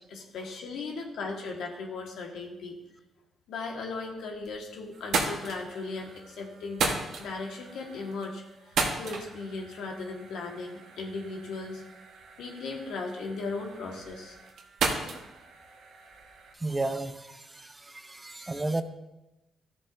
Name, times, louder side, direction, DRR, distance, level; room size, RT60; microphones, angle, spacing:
voice 1, 0.1-2.7 3.5-11.8 12.4-14.4, left 3 dB, 80° left, 1 dB, 1.5 m, -37 dB
sound 1, 4.1-4.6 4.9-16.5, right 4 dB, 75° right, 1.2 m, -36 dB
voice 2, 16.5-18.8, right 2 dB, 20° right, 10 dB, 0.6 m, -33 dB
13.0 x 7.0 x 2.6 m, 1.0 s
cardioid pair, 70°, 0 cm